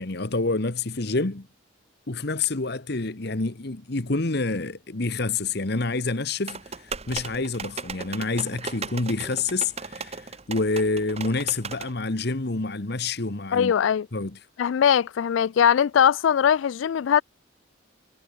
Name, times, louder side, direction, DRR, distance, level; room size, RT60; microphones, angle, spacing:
voice 1, 0.0-1.5 2.1-13.7 14.1-14.4, left 3 dB, 55° left, 1.3 m, -28 dB
sound 1, 6.5-11.9, right 5 dB, 30° right, 1.5 m, -37 dB
voice 2, 13.5-14.1 14.6-17.2, left 8 dB, 75° left, 0.3 m, -20 dB
head